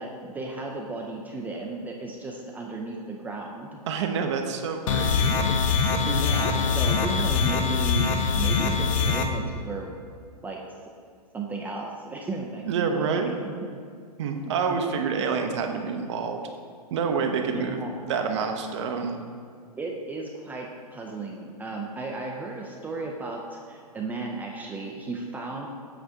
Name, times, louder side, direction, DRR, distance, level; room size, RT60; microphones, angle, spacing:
voice 1, 0.0-3.8 6.1-8.1 8.3-9.9 10.4-10.6 11.3-13.8 14.3-14.5 17.5-17.9 19.8-25.7, right 3 dB, 10° right, -1 dB, 0.5 m, -35 dB
voice 2, 3.9-5.4 12.6-13.4 14.2-16.4 16.9-17.8 18.1-19.2, right 5 dB, 45° right, 4 dB, 0.7 m, -27 dB
sound 1, 4.9-9.2, left 5 dB, 55° left, 0.7 m, -23 dB
8.0 x 3.3 x 6.2 m, 2.1 s
figure-of-eight pair, 110°, 20 cm